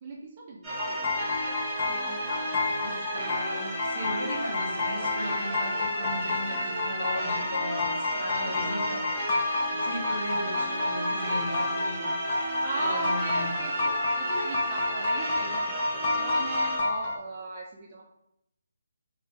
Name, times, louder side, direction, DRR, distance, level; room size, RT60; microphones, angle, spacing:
voice 1, 0.0-1.4 1.9-2.8 3.2-3.5 4.0-4.4 8.4-8.9 9.2-9.3 12.6-18.0, right 2 dB, 30° right, -1 dB, 0.3 m, -38 dB
sound 1, 0.6-16.8, right 1 dB, 10° right, 0.7 m, -33 dB
sound 2, 0.7-17.2, left 3 dB, 35° left, 0.5 m, -30 dB
voice 2, 2.8-9.3 9.7-12.2 12.8-13.4, left 1 dB, 70° left, -3 dB, 0.9 m, -36 dB
2.4 x 2.3 x 3.0 m, 0.81 s
figure-of-eight pair, 160°, 0 cm